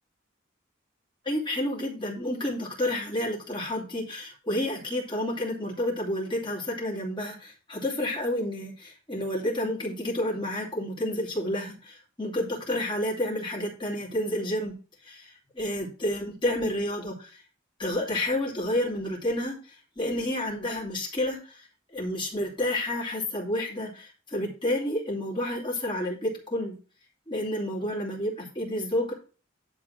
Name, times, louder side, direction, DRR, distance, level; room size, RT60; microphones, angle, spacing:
voice 1, 1.2-14.7 15.0-17.4 17.8-21.7 21.9-26.8 27.3-29.1, left 1 dB, 25° left, -3 dB, 2.9 m, -30 dB
11.0 x 3.9 x 5.9 m, 0.37 s
head